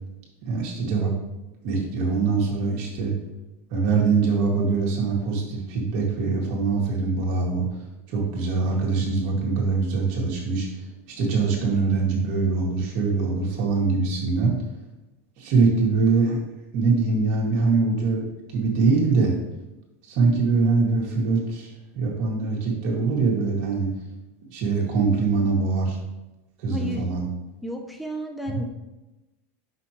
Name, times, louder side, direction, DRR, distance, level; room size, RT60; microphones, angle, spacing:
voice 1, 0.4-1.1 1.6-3.1 3.7-7.7 8.1-10.7 11.1-14.5 15.4-16.4 16.7-19.3 20.0-23.9 24.5-26.0 26.6-27.3, right 4 dB, 50° right, -2 dB, 2.0 m, -23 dB
voice 2, 26.7-27.1 27.6-28.6, equal, ahead, 2 dB, 0.4 m, -32 dB
6.0 x 5.7 x 3.0 m, 1.0 s
supercardioid pair, 160°, 8 cm